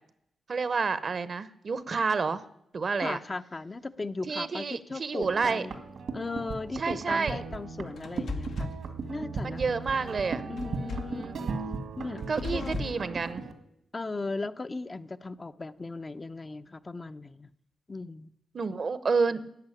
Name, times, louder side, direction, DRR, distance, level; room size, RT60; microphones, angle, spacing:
voice 1, 0.5-2.4 2.7-3.2 4.3-5.6 6.8-7.4 9.4-10.4 10.7-11.3 12.3-13.4 18.5-19.4, right 4 dB, 55° right, 15 dB, 0.9 m, -29 dB
voice 2, 3.0-5.8 6.1-8.7 9.1-9.8 10.5-11.5 12.0-12.2 12.5-12.9 13.9-17.5 17.9-18.3, left 3 dB, 35° left, 10 dB, 0.6 m, -37 dB
sound 1, 5.2-13.5, right 4 dB, 75° right, 1.6 m, -37 dB
sound 2, 8.0-8.8 10.6-11.2 12.2-13.0, left 5 dB, 75° left, 1.0 m, -37 dB
12.0 x 8.0 x 10.0 m, 0.77 s
cardioid pair, 65°, 0 cm